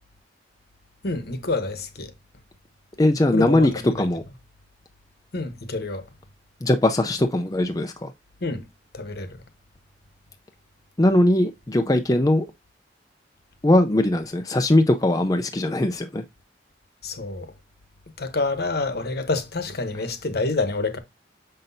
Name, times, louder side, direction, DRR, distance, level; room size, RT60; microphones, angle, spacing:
voice 1, 1.0-2.1 3.3-4.0 5.3-6.1 8.4-8.7 8.9-9.4 17.0-17.5 18.2-21.0, left 3 dB, 60° left, 1.1 m, -28 dB
voice 2, 3.0-4.2 6.6-8.1 11.0-12.5 13.6-16.2, left 1 dB, 20° left, 0.5 m, -20 dB
6.5 x 5.8 x 2.7 m
head